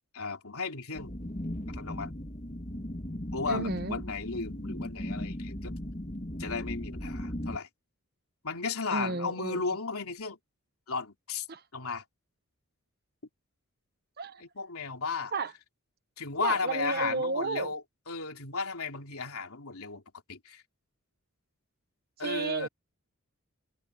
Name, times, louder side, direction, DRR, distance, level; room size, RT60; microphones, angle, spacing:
voice 1, 0.1-1.1 1.7-2.1 3.3-5.8 6.4-7.7 8.4-10.4 10.9-11.5 11.7-12.0 14.4-15.3 16.2-20.0 20.3-20.6 22.2-22.7, left 4 dB, 75° left, 3.1 m, -35 dB
sound 1, 1.0-7.6, equal, 30° left, 2.4 m, -37 dB
voice 2, 3.5-4.0 8.9-9.6 11.5-11.6 14.2-14.4 15.3-15.5 16.4-17.7 22.2-22.7, right 3 dB, 45° right, 1.0 m, -32 dB
head